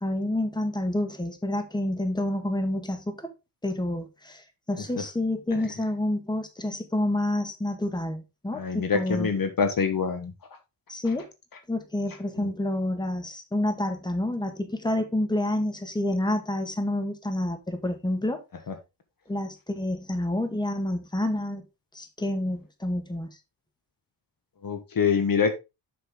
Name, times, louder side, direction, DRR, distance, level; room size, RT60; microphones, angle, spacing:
voice 1, 0.0-3.3 3.6-9.3 10.9-11.3 11.7-18.4 19.3-21.7 21.9-23.3, left 1 dB, 10° left, 1.7 m, -28 dB
voice 2, 8.5-10.3 12.4-12.5 18.7-18.8 24.6-25.6, left 6 dB, 55° left, 1.4 m, -25 dB
6.9 x 6.7 x 3.7 m
cardioid pair, 80°, 41 cm